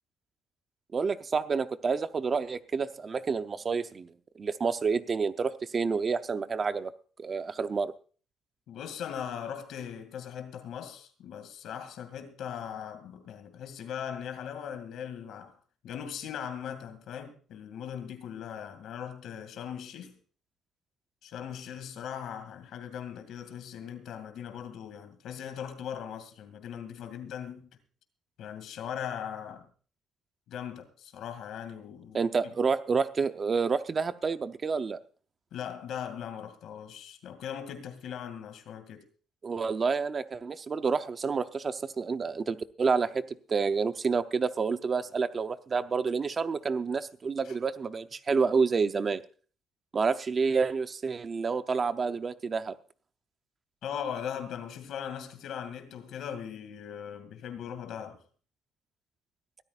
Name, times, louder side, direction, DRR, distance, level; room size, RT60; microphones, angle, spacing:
voice 1, 0.9-4.1 4.4-6.9 7.2-7.9 32.1-35.0 39.4-49.2 49.9-52.8, right 5 dB, 25° right, 0.6 m, -29 dB
voice 2, 8.7-15.6 15.8-20.1 21.2-27.7 28.4-29.7 30.5-32.5 35.5-39.1 47.4-47.6 53.8-58.2, left 8 dB, 60° left, 2.3 m, -39 dB
23.0 x 13.5 x 2.4 m
cardioid pair, 165°, 0 cm